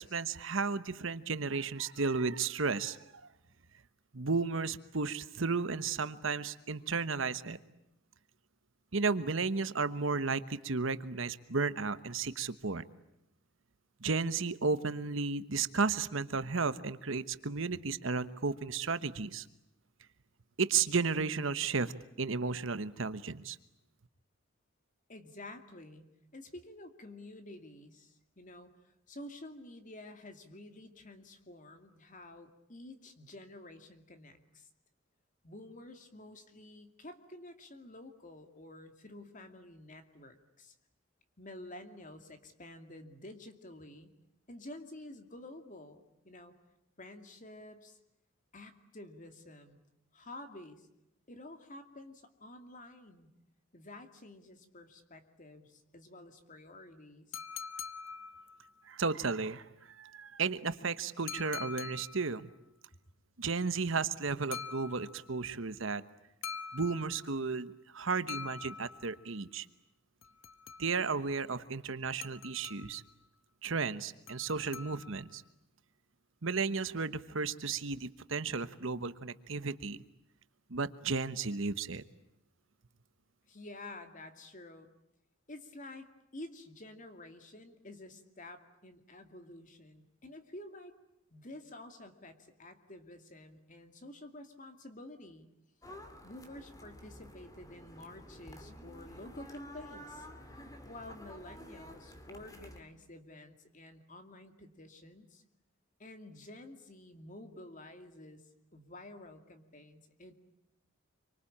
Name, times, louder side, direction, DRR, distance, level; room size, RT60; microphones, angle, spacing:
voice 1, 0.0-3.0 4.1-7.6 8.9-12.8 14.0-19.4 20.6-21.9 22.2-23.6 58.9-59.6 60.0-62.5 63.4-66.0 66.7-69.6 70.8-73.0 73.6-75.4 76.4-80.0 80.7-82.0, right 4 dB, 65° right, 13 dB, 1.1 m, -33 dB
voice 2, 25.1-26.1 26.3-34.7 35.4-40.7 41.4-44.1 44.5-46.5 47.0-48.0 48.5-49.8 50.1-50.9 51.3-53.3 53.7-57.4 83.5-84.9 85.5-90.9 91.3-95.5 96.2-100.3 100.6-105.4 106.0-108.4 108.7-110.3, left 1 dB, 40° left, 7 dB, 2.4 m, -50 dB
sound 1, 57.3-58.8 61.3-62.4 64.5-65.4 66.4-67.5 68.3-69.3 70.2-71.2 72.2-73.1 74.3-75.4, left 6 dB, 75° left, 0.9 m, -45 dB
sound 2, 95.8-102.8, equal, 15° left, 2.6 m, -51 dB
26.5 x 25.0 x 8.7 m, 0.87 s
head